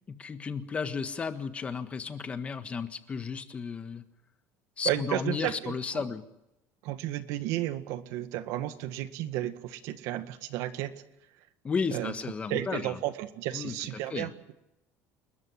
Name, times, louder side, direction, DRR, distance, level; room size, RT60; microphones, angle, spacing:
voice 1, 0.1-4.0 4.8-6.2 11.6-13.0 13.5-13.7 14.1-14.3, left 5 dB, 25° left, 9 dB, 1.5 m, -33 dB
voice 2, 4.9-6.1 6.8-10.9 11.9-12.1 12.5-14.5, right 14 dB, 75° right, 10 dB, 1.8 m, -33 dB
29.5 x 13.5 x 9.7 m, 0.89 s
cardioid pair, 145°, 6 cm